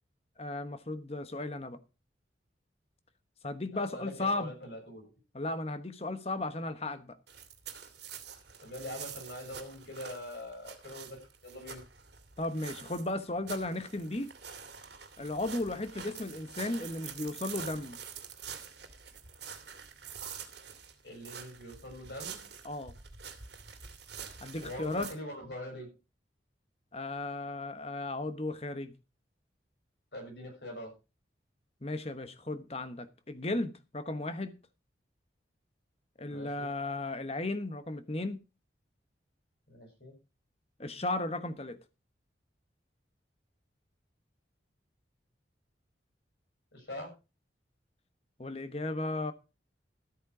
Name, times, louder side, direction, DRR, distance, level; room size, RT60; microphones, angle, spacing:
voice 1, 0.4-1.8 3.4-4.5 5.3-7.2 12.4-14.3 15.2-18.0 22.6-22.9 24.4-25.1 26.9-28.9 31.8-34.6 36.2-38.4 40.8-41.8 48.4-49.3, left 2 dB, 35° left, 1.1 m, -35 dB
voice 2, 3.7-5.1 8.6-11.2 11.4-11.8 21.0-22.4 24.6-25.9 30.1-30.9 36.3-36.7 39.7-40.1 46.7-47.1, left 1 dB, 65° left, 6.7 m, -43 dB
sound 1, 7.3-25.1, right 7 dB, 65° right, 2.3 m, -46 dB
13.5 x 8.9 x 4.9 m
head